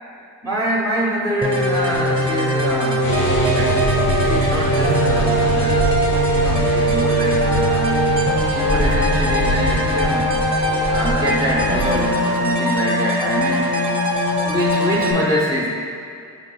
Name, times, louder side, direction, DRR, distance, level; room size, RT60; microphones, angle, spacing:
voice 1, 0.4-3.1 3.5-3.9 4.2-5.8 6.3-8.0 8.5-10.4 10.9-13.7 14.4-15.7, right 1 dB, 10° left, -7 dB, 0.8 m, -24 dB
sound 1, 1.4-15.1, equal, 15° right, 1.0 m, -20 dB
sound 2, 3.0-12.1, equal, 55° left, 1.2 m, -24 dB
5.1 x 4.7 x 2.2 m, 2.4 s
cardioid pair, 75°, 43 cm